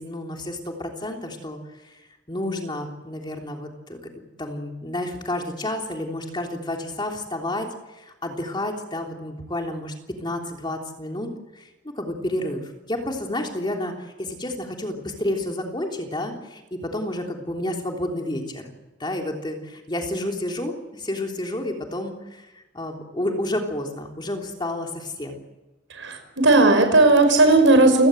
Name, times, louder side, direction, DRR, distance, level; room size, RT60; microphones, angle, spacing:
voice 1, 0.0-2.0 2.3-4.0 4.4-7.7 7.9-18.7 19.0-25.4, left 1 dB, 25° left, 2 dB, 3.3 m, -30 dB
voice 2, 26.0-28.1, right 2 dB, 75° right, 6 dB, 5.5 m, -16 dB
29.5 x 18.0 x 7.9 m, 1.1 s
head